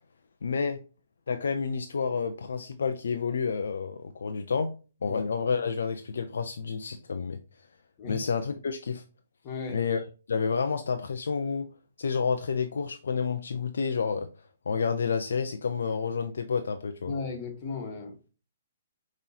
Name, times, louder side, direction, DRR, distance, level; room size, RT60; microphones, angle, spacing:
voice 1, 0.4-0.8 1.3-4.7 5.0-7.4 8.1-9.0 9.7-11.7 12.0-14.3 14.7-17.1, left 5 dB, 75° left, 0.4 m, -29 dB
voice 2, 9.4-9.8 17.0-18.3, left 4 dB, 35° left, 1.4 m, -36 dB
5.2 x 3.0 x 2.7 m
hypercardioid pair, 130°, 0 cm